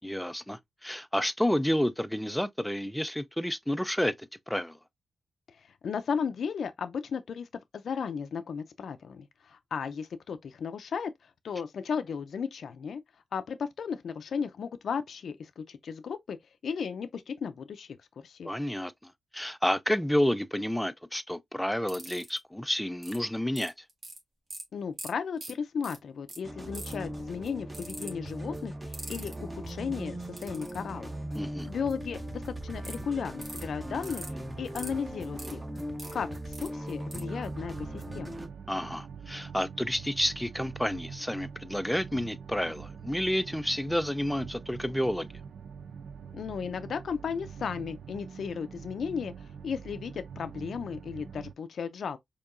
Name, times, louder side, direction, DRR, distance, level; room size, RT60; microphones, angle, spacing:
voice 1, 0.0-4.8 18.4-23.7 31.3-31.7 38.7-45.3, equal, 5° left, 0.4 m, -30 dB
voice 2, 5.6-7.5 7.7-11.1 11.4-13.0 13.3-16.4 16.6-18.0 18.2-18.5 24.7-31.1 31.7-34.2 34.6-35.6 36.1-38.4 46.3-52.2, left 6 dB, 70° left, 0.4 m, -35 dB
sound 1, 21.9-22.4 23.0-23.2 23.6-24.2 24.5-24.6 25.0-25.1 25.4-25.5 25.8-26.0 26.3-26.4 26.7-27.0 27.7-28.1 28.9-29.3 30.4-30.8 32.8-33.0 33.4-33.6 34.0-34.3 34.8-34.9 35.4-36.1 36.5-36.7 37.1-37.2, right 2 dB, 50° right, 1.6 m, -41 dB
sound 2, 26.4-38.5, right 1 dB, 15° right, 0.8 m, -39 dB
sound 3, 37.4-51.5, right 6 dB, 80° right, 0.3 m, -44 dB
4.6 x 2.8 x 2.5 m
wide cardioid pair, 125°, 0 cm